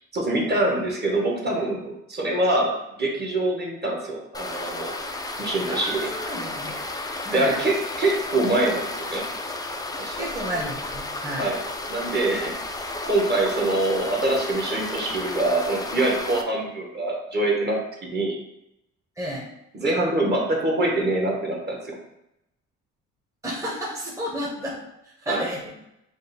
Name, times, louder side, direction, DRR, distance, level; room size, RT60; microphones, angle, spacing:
voice 1, 0.1-4.9 5.4-6.1 7.3-9.3 10.0-10.3 11.4-11.6 11.9-12.5 13.0-18.4 19.7-22.0 25.3-25.4, right 2 dB, 35° right, -1 dB, 1.2 m, -24 dB
sound 1, 4.3-16.4, left 2 dB, 15° left, 0.4 m, -33 dB
voice 2, 5.7-6.8 7.2-7.6 10.2-11.5 19.2-19.5 23.4-24.8 25.2-25.6, equal, 10° right, -4 dB, 0.9 m, -31 dB
5.0 x 2.0 x 4.1 m, 0.83 s
cardioid pair, 90°, 30 cm